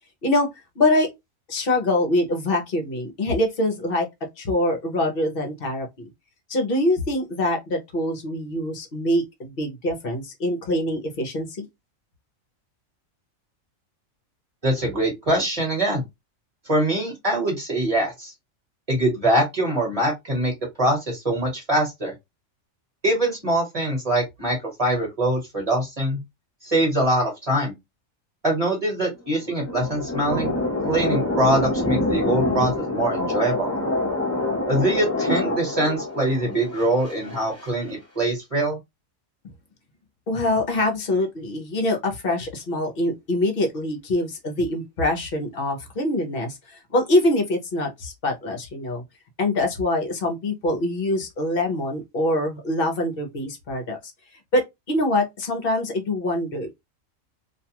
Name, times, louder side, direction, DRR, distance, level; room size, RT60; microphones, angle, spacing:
voice 1, 0.8-1.1 1.5-4.1 4.4-6.1 6.5-11.7 40.3-49.0 49.4-54.0 54.5-56.7, left 1 dB, 50° left, 0.8 m, -24 dB
voice 2, 14.6-16.0 16.7-18.3 18.9-20.5 20.8-22.1 23.0-26.2 26.6-27.7 28.4-30.6 30.8-33.7 34.7-38.8, right 1 dB, 30° right, 1.2 m, -23 dB
sound 1, 29.2-37.7, left 2 dB, 15° left, 0.6 m, -26 dB
2.5 x 2.3 x 2.8 m
omnidirectional pair, 1.4 m